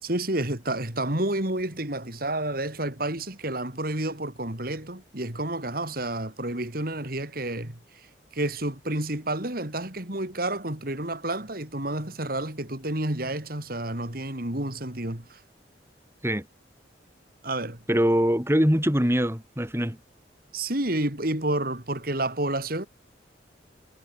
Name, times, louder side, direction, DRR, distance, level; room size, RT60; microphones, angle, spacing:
voice 1, 0.0-15.4 17.4-17.8 20.5-22.9, right 1 dB, 50° right, 3.9 m, -30 dB
voice 2, 17.9-20.0, equal, 15° right, 4.8 m, -23 dB
head